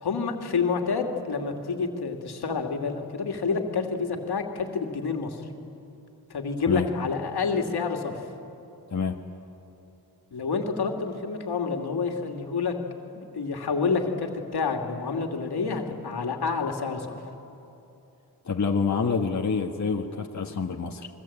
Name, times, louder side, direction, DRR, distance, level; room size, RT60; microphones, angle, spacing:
voice 1, 0.0-5.4 6.3-8.2 10.3-12.8 13.1-17.2, left 5 dB, 75° left, 3 dB, 2.7 m, -28 dB
voice 2, 18.4-21.1, left 5 dB, 45° left, 1 dB, 1.6 m, -27 dB
29.5 x 22.0 x 8.8 m, 2.8 s
cardioid pair, 80°, 40 cm